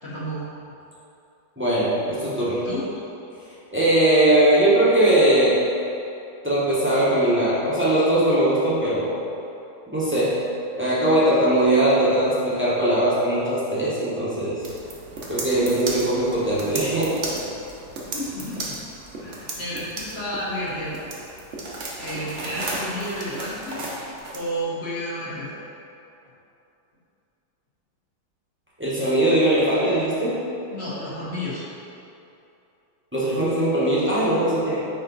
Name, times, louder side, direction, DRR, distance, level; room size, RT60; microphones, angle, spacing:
voice 1, 0.0-0.4 2.5-2.8 18.0-18.8 19.2-20.9 22.0-23.9 24.3-25.5 30.7-31.7, equal, 45° left, -7 dB, 1.0 m, -31 dB
voice 2, 1.6-2.6 3.7-5.6 6.4-9.2 9.9-10.4 10.7-14.6 15.3-17.2 28.8-30.4 33.1-34.8, right 1 dB, 10° right, -9 dB, 0.7 m, -20 dB
sound 1, 14.6-24.5, right 2 dB, 50° right, 0.9 m, -34 dB
5.3 x 4.9 x 3.9 m, 2.7 s
omnidirectional pair, 2.0 m